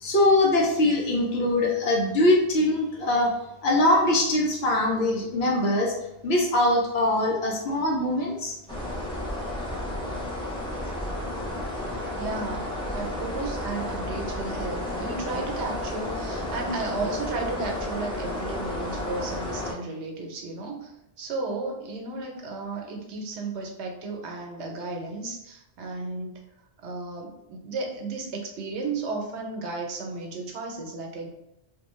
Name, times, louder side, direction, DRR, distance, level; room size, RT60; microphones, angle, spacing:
voice 1, 0.0-3.3 3.6-5.9 6.2-8.5, left 1 dB, 70° left, -2 dB, 1.0 m, -22 dB
sound 1, 8.7-19.7, left 1 dB, 5° left, 0.4 m, -32 dB
voice 2, 12.2-26.4 26.8-31.3, right 3 dB, 85° right, 2 dB, 0.9 m, -34 dB
2.6 x 2.2 x 3.0 m, 0.85 s
omnidirectional pair, 1.1 m